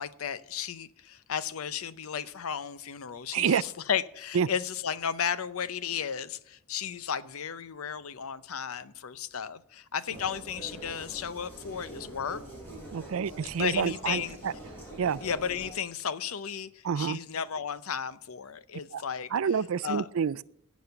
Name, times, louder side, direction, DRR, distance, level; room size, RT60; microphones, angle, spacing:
voice 1, 0.0-12.4 13.6-14.4 15.2-16.7 17.0-19.3 19.8-20.1, left 7 dB, 85° left, 0.6 m, -34 dB
voice 2, 3.3-3.6 4.3-4.5 12.9-14.5 15.0-15.2 16.8-17.2 18.9-19.0 19.3-20.4, right 7 dB, 75° right, 0.4 m, -28 dB
sound 1, 10.1-15.7, right 1 dB, 10° left, 5.3 m, -45 dB
16.5 x 6.3 x 7.0 m
head